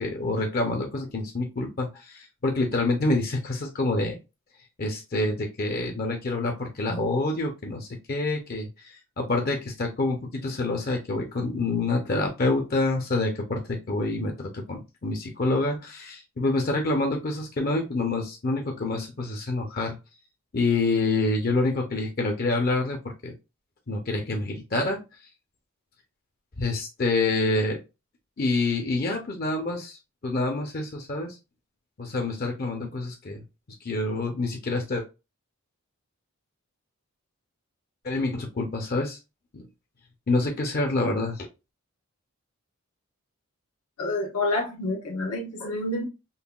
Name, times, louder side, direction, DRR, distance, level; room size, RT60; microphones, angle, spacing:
voice 1, 0.0-4.2 4.8-20.0 20.5-23.3 23.9-25.0 26.6-27.8 28.4-30.0 30.2-31.4 32.0-33.4 33.8-35.0 38.0-39.2 39.5-39.7 40.3-41.5, left 2 dB, 40° left, 0.6 m, -27 dB
voice 2, 44.0-46.1, left 2 dB, 85° left, 1.1 m, -28 dB
5.4 x 2.2 x 2.3 m
head